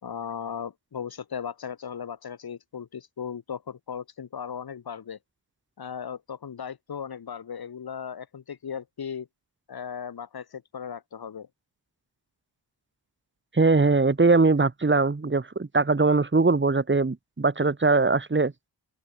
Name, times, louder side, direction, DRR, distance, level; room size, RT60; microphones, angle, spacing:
voice 1, 0.0-5.2 5.8-9.3 9.7-11.5, left 7 dB, 55° left, 6.4 m, -37 dB
voice 2, 13.5-18.5, right 3 dB, 25° right, 6.3 m, -21 dB
cardioid pair, 85°, 43 cm